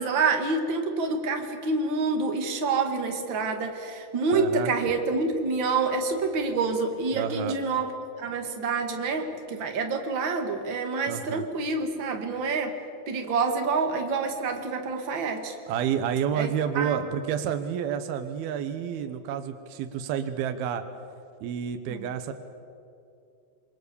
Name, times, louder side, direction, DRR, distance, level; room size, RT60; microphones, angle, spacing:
voice 1, 0.0-7.9 8.2-12.7 13.1-15.5 16.3-16.5 16.7-17.0 21.9-22.0, right 4 dB, 45° right, 4 dB, 1.6 m, -27 dB
voice 2, 4.3-4.7 7.1-7.6 11.1-11.5 15.7-20.8 21.4-22.3, right 8 dB, 70° right, 8 dB, 2.6 m, -29 dB
27.0 x 23.5 x 7.0 m, 2.5 s
omnidirectional pair, 5.3 m